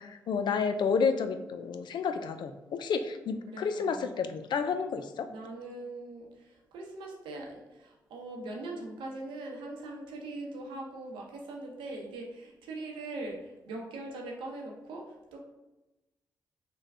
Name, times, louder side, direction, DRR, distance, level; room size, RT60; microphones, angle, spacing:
voice 1, 0.0-5.3, left 5 dB, 65° left, 9 dB, 0.3 m, -30 dB
voice 2, 3.5-4.2 5.3-15.4, right 2 dB, 85° right, 0 dB, 0.7 m, -41 dB
3.3 x 2.2 x 3.6 m, 1.0 s
supercardioid pair, 45°, 8 cm